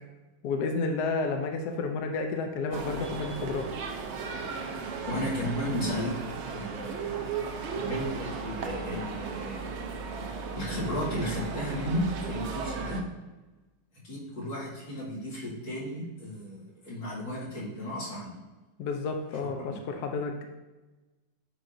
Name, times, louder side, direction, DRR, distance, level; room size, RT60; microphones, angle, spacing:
voice 1, 0.4-3.7 18.8-20.5, left 4 dB, 70° left, 4 dB, 1.1 m, -31 dB
sound 1, 2.7-13.0, right 5 dB, 75° right, 0.6 m, -35 dB
voice 2, 5.1-6.2 6.5-9.6 10.6-13.0 14.0-18.3 19.6-19.8, equal, 85° left, -8 dB, 2.9 m, -34 dB
9.6 x 4.4 x 2.6 m, 1.2 s
omnidirectional pair, 2.0 m